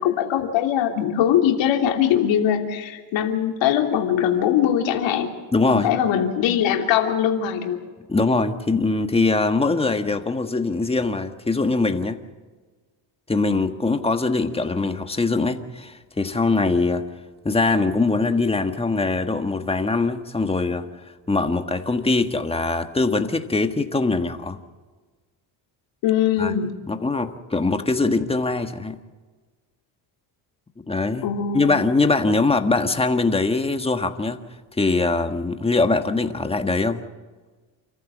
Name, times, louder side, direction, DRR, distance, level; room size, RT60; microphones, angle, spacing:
voice 1, 0.0-5.3 5.7-7.8 26.0-26.8 31.2-31.7, left 9 dB, 80° left, 3 dB, 3.1 m, -21 dB
voice 2, 5.5-5.9 8.1-12.2 13.3-17.0 17.4-20.9 21.3-24.6 26.4-26.5 26.9-29.0 30.9-31.3 31.5-34.4 34.8-37.0, left 3 dB, 15° left, 7 dB, 1.5 m, -22 dB
28.5 x 14.5 x 7.4 m, 1.3 s
cardioid pair, 115°, 44 cm